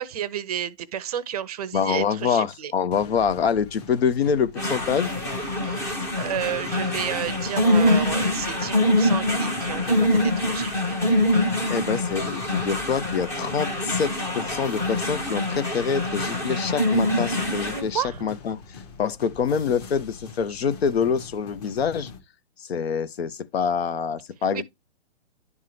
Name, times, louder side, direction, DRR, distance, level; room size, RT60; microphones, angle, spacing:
voice 1, 0.0-2.7 5.6-11.0 17.7-18.2 24.5-24.6, right 10 dB, 35° right, 0.5 m, -32 dB
voice 2, 1.7-5.1 11.7-18.6 19.0-22.1 22.6-24.6, left 6 dB, 65° left, 0.8 m, -25 dB
sound 1, 2.9-22.2, left 5 dB, 35° left, 1.5 m, -43 dB
sound 2, 4.6-17.8, left 1 dB, 10° left, 0.6 m, -24 dB
11.0 x 3.6 x 3.2 m
hypercardioid pair, 145°, 34 cm